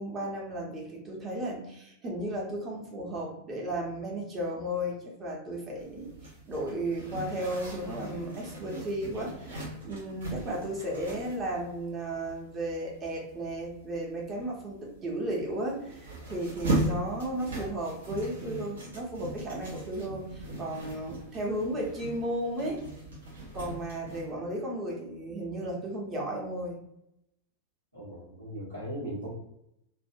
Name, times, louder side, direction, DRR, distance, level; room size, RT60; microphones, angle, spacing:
voice 1, 0.0-6.1 6.5-22.8 23.5-26.8, right 1 dB, 25° right, -2 dB, 0.8 m, -34 dB
Zipper (clothing), 5.7-24.3, right 1 dB, 65° right, 0.6 m, -39 dB
voice 2, 27.9-29.3, right 1 dB, 85° right, -12 dB, 1.0 m, -38 dB
2.5 x 2.1 x 2.4 m, 0.81 s
figure-of-eight pair, 90°, 0 cm